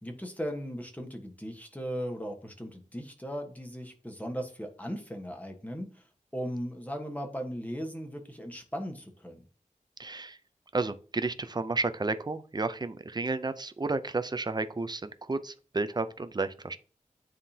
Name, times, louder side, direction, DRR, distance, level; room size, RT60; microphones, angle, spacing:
voice 1, 0.0-6.0 6.3-9.4, equal, 10° left, 4 dB, 1.2 m, -37 dB
voice 2, 10.0-10.4 10.7-16.8, right 3 dB, 30° right, 11 dB, 0.5 m, -32 dB
9.6 x 3.6 x 2.8 m, 0.40 s
wide cardioid pair, 75°, 14 cm